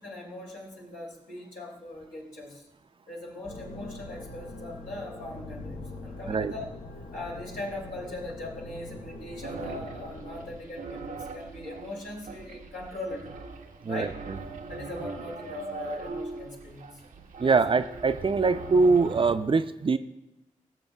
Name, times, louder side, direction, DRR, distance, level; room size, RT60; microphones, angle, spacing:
voice 1, 0.0-2.7 3.1-6.6 7.1-13.3 13.9-14.1 14.7-17.0 17.4-17.6, left 2 dB, 90° left, -4 dB, 2.8 m, -40 dB
sound 1, 3.4-10.6, left 2 dB, 65° left, 0.9 m, -43 dB
sound 2, 9.4-19.4, right 3 dB, 85° right, 0.7 m, -41 dB
voice 2, 17.4-20.0, right 4 dB, 40° right, 11 dB, 0.5 m, -23 dB
16.0 x 7.1 x 2.3 m, 0.94 s
cardioid pair, 45°, 13 cm